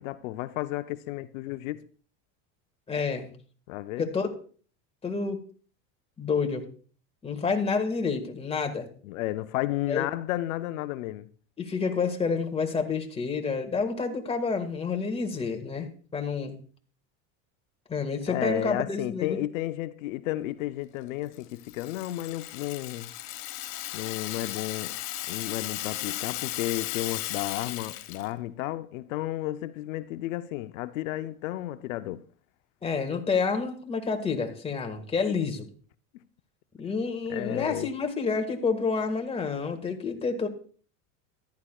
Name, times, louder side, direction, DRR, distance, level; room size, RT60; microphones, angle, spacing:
voice 1, 0.0-1.8 3.7-4.1 9.0-11.3 18.3-23.1 23.9-24.9 25.3-32.2 37.3-37.9, left 15 dB, 85° left, 0.6 m, -32 dB
voice 2, 2.9-3.3 4.0-4.3 5.0-5.4 6.2-6.6 7.2-8.9 9.9-10.1 11.6-16.5 17.9-19.4 32.8-35.7 36.8-40.5, left 5 dB, 15° left, 1.7 m, -29 dB
Rattle (instrument), 21.3-28.3, left 16 dB, 65° left, 1.4 m, -36 dB
14.0 x 11.5 x 2.3 m
supercardioid pair, 125°, 38 cm